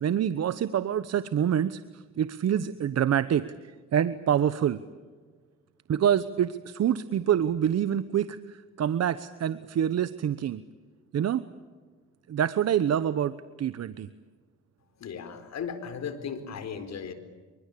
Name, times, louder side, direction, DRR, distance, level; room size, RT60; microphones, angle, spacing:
voice 1, 0.0-3.4 3.9-4.8 5.9-10.6 11.1-11.4 12.3-14.1, right 9 dB, 55° right, 14 dB, 1.0 m, -26 dB
voice 2, 15.0-17.1, left 6 dB, 60° left, 10 dB, 4.3 m, -36 dB
28.0 x 24.0 x 8.5 m, 1.5 s
cardioid pair, 90°, 30 cm